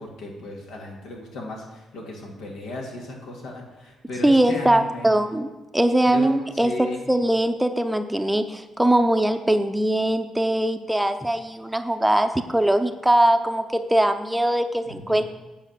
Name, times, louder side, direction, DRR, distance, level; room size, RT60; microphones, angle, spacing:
voice 1, 0.0-5.1 6.1-7.1 14.9-15.2, left 1 dB, 85° left, -1 dB, 2.3 m, -36 dB
voice 2, 4.2-15.2, right 1 dB, 5° right, 8 dB, 0.6 m, -21 dB
8.8 x 4.9 x 7.5 m, 1.1 s
cardioid pair, 90°, 0 cm